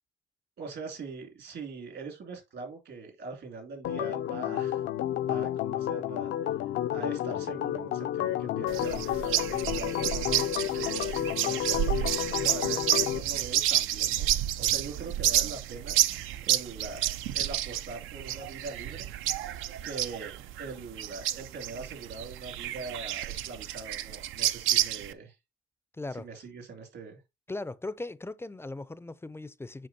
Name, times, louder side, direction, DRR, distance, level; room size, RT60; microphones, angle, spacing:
voice 1, 0.6-4.9 5.3-6.4 6.9-14.3 14.6-16.0 16.4-19.1 19.8-25.4 26.1-27.2, right 4 dB, 65° right, 2.4 m, -42 dB
Organ, 3.8-13.2, left 11 dB, 70° left, 0.5 m, -31 dB
sound 1, 8.7-25.1, right 12 dB, 85° right, 0.5 m, -30 dB
voice 2, 25.9-26.3 27.5-29.9, left 2 dB, 10° left, 0.4 m, -38 dB
7.7 x 5.0 x 2.7 m
cardioid pair, 90°, 20 cm